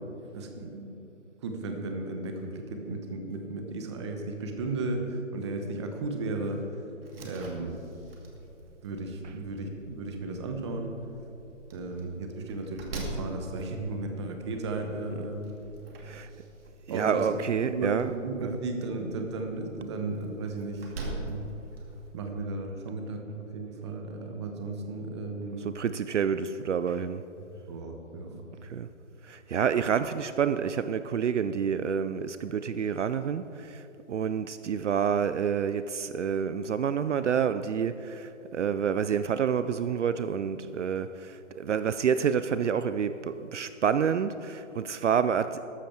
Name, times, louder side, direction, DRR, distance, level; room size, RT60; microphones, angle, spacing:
voice 1, 0.3-0.9 1.4-6.6 7.2-7.8 8.8-10.9 11.7-15.5 16.9-21.5 22.1-25.7 27.7-28.4, right 2 dB, 20° right, 4 dB, 1.0 m, -35 dB
Slam, 7.0-22.1, right 2 dB, 50° right, 2.3 m, -44 dB
voice 2, 16.9-18.1 18.4-18.6 25.6-27.2 28.6-28.9 29.3-33.8 34.1-45.6, right 7 dB, 65° right, 12 dB, 0.6 m, -28 dB
13.0 x 12.5 x 4.6 m, 2.9 s
hypercardioid pair, 160°, 39 cm